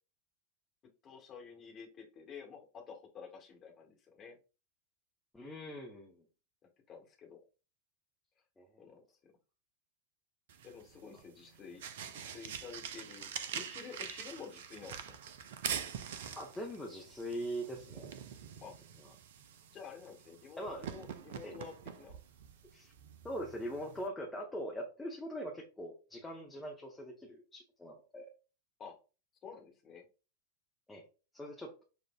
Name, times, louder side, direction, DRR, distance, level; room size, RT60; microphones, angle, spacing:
voice 1, 1.0-4.4 6.9-7.4 8.8-9.3 10.6-15.2 18.6-18.8 19.7-22.2 28.8-29.0 29.4-30.0, left 6 dB, 30° left, 1 dB, 1.2 m, -50 dB
voice 2, 5.3-6.2 8.6-8.7 16.4-18.1 20.6-20.9 21.4-21.5 22.7-22.9 23.2-28.3 30.9-31.0 31.3-31.8, equal, 10° left, -1 dB, 0.8 m, -42 dB
sound 1, 10.5-24.1, right 8 dB, 55° right, 0.4 m, -45 dB
6.4 x 2.4 x 2.2 m, 0.33 s
figure-of-eight pair, 90°, 0 cm